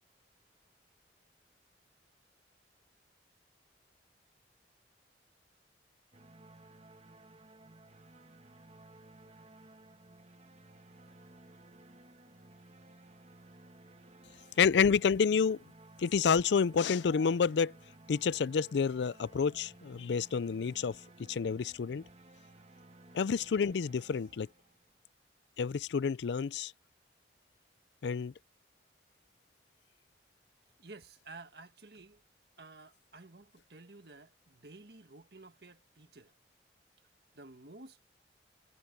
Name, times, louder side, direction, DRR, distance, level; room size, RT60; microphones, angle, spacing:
sound 1, 6.1-25.0, right 2 dB, 35° right, 1.3 m, -57 dB
voice 1, 14.6-15.6 16.0-17.7 18.1-21.0 21.3-22.0 23.1-24.5 25.6-26.7 28.0-28.3, left 6 dB, 80° left, 0.4 m, -29 dB
voice 2, 30.8-32.2 32.6-36.3 37.3-38.0, right 3 dB, 65° right, 1.7 m, -52 dB
head